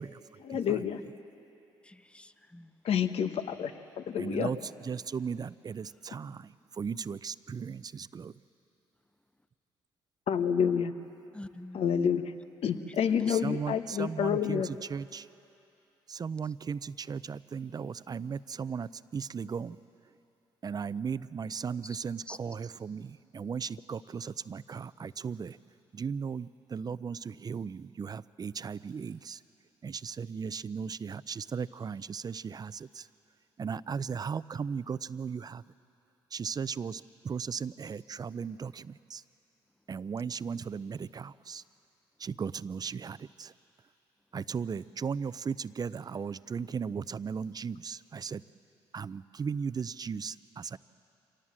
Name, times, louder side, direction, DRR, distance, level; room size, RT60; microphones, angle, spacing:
voice 1, 0.4-1.0 2.8-4.5 10.3-10.9 11.7-12.3 12.6-14.7, left 8 dB, 65° left, 9 dB, 1.1 m, -29 dB
voice 2, 1.8-2.7 11.3-11.9 12.7-12.9 13.2-13.3 21.8-22.0 22.3-22.4, left 1 dB, 10° left, 13 dB, 0.8 m, -45 dB
voice 3, 4.2-4.6 4.8-8.3 13.4-15.3 16.1-19.8 20.6-25.6 25.9-29.4 29.8-33.1 33.6-35.6 36.3-39.2 39.9-41.6 42.2-43.5 44.3-48.4 48.9-50.8, right 6 dB, 35° right, 17 dB, 0.5 m, -36 dB
25.5 x 18.0 x 7.5 m, 2.8 s
supercardioid pair, 60°, 11 cm